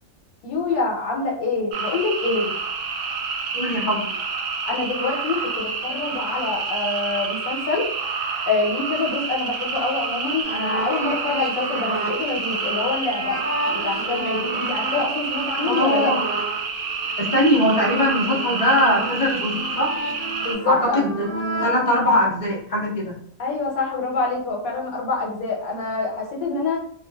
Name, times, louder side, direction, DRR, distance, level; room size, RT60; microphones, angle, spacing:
voice 1, 0.4-2.5 4.7-7.9 8.5-13.4 13.7-16.1 20.4-21.0 23.4-26.8, left 3 dB, 80° left, -1 dB, 1.1 m, -26 dB
sound 1, 1.7-20.5, right 5 dB, 70° right, 0.9 m, -28 dB
voice 2, 3.5-4.0 15.7-16.2 17.2-20.0 20.7-21.3 21.6-23.1, left 1 dB, 40° left, -4 dB, 0.5 m, -21 dB
sound 2, 10.4-16.5 17.0-21.8, right 1 dB, 15° right, 0.6 m, -31 dB
2.4 x 2.4 x 2.2 m, 0.64 s
omnidirectional pair, 1.5 m